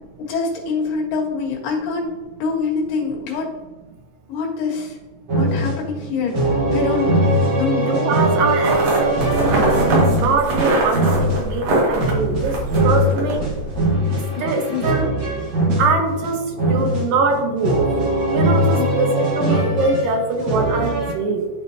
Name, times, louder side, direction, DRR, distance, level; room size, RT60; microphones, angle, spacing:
voice 1, 0.2-2.1 2.4-3.5 4.3-5.0 5.4-7.9 14.3-14.4 14.7-14.9 18.7-18.9, left 4 dB, 90° left, -1 dB, 3.3 m, -25 dB
sound 1, 5.3-21.1, right 1 dB, 45° right, 1.6 m, -21 dB
voice 2, 7.9-13.5 14.4-15.1 15.8-17.9 18.3-21.5, right 3 dB, 85° right, 3 dB, 2.8 m, -23 dB
sound 2, 8.6-13.9, right 2 dB, 65° right, 3.3 m, -23 dB
12.0 x 4.6 x 2.8 m, 1.3 s
omnidirectional pair, 3.8 m